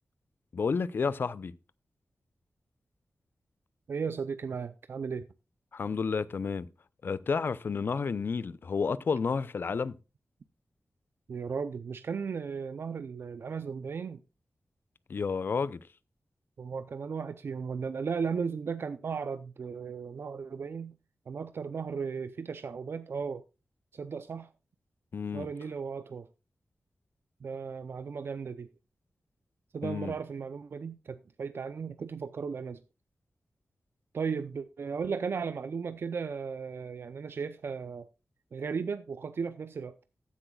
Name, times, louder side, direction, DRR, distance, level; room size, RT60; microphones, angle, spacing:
voice 1, 0.5-1.5 5.7-6.7 7.0-10.0 15.1-15.8 25.1-25.5 29.8-30.1, left 5 dB, 55° left, 0.5 m, -31 dB
voice 2, 3.9-5.3 11.3-14.2 16.6-21.0 21.3-23.4 23.9-24.5 25.3-26.3 27.4-28.7 29.7-32.8 34.1-38.1 38.5-40.0, right 5 dB, 65° right, 0.5 m, -35 dB
14.5 x 10.0 x 2.3 m
wide cardioid pair, 130°, 4 cm